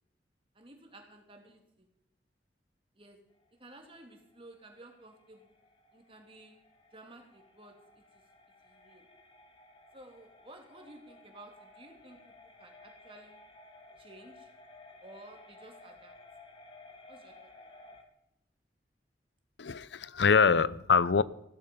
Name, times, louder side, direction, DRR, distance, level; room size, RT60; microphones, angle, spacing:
voice 1, 0.5-1.9 2.9-3.2 3.6-5.5 5.9-6.6 6.9-7.7 8.1-8.2 8.6-9.1 9.9-13.4 14.0-14.5 15.0-16.1 17.1-17.7, right 1 dB, 30° right, 3 dB, 2.8 m, -54 dB
sound 1, 3.3-18.0, left 2 dB, 30° left, 2.0 m, -56 dB
voice 2, 19.6-21.2, left 5 dB, 85° left, 19 dB, 0.6 m, -24 dB
16.0 x 13.5 x 5.3 m, 0.79 s
head